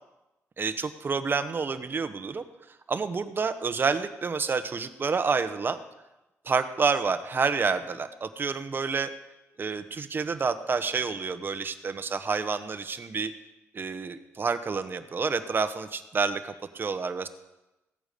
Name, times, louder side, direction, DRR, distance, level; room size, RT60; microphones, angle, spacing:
voice 1, 0.6-2.4 2.9-5.8 6.4-9.1 9.6-13.3 13.7-17.3, right 5 dB, 40° right, 10 dB, 1.2 m, -29 dB
16.0 x 9.0 x 6.8 m, 1.0 s
cardioid pair, 75°, 5 cm